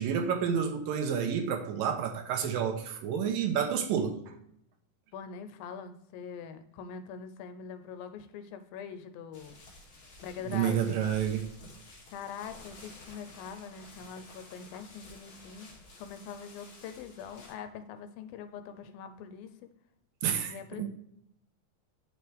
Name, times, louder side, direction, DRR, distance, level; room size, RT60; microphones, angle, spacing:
voice 1, 0.0-4.2 10.5-11.5 20.2-20.9, right 8 dB, 80° right, 2.6 m, -29 dB
voice 2, 5.1-9.6 10.2-11.1 12.1-15.7 16.0-19.7 20.5-20.9, left 7 dB, 80° left, 2.5 m, -43 dB
sound 1, 9.3-17.5, left 2 dB, 40° left, 2.4 m, -52 dB
8.8 x 6.7 x 3.4 m
omnidirectional pair, 4.1 m